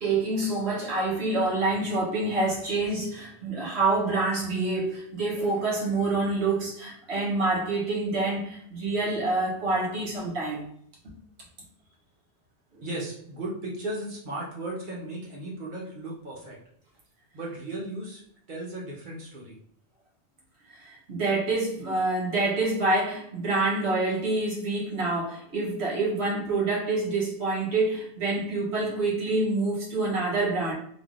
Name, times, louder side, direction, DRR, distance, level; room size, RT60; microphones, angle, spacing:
voice 1, 0.0-10.7 11.0-11.1 12.7-12.8 20.7-30.7, right 2 dB, 70° right, 1.3 m, -27 dB
voice 2, 12.8-16.6 17.3-19.6, right 1 dB, 50° right, 1.1 m, -36 dB
3.3 x 2.5 x 2.5 m
omnidirectional pair, 1.1 m